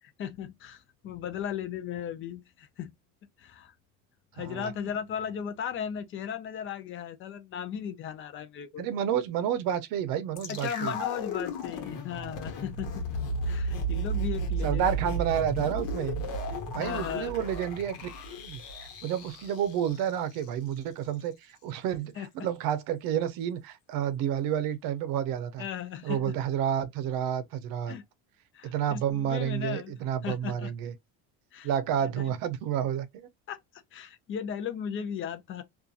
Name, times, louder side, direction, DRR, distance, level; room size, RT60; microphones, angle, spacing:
voice 1, 0.0-2.9 3.4-3.7 4.3-8.8 10.5-13.1 13.5-14.9 16.8-17.3 22.2-22.3 25.6-26.4 27.9-28.0 28.5-29.9 30.2-30.7 31.5-31.7 33.5-35.6, left 8 dB, 35° left, 0.4 m, -36 dB
voice 2, 4.4-4.7 8.8-11.0 14.6-16.2 16.7-18.1 18.4-25.7 26.0-28.0 28.6-30.9 31.6-33.3, right 9 dB, 70° right, 0.6 m, -30 dB
sound 1, 10.4-20.5 20.8-20.9, right 1 dB, 60° left, 1.1 m, -34 dB
2.6 x 2.4 x 2.3 m
cardioid pair, 160°, 36 cm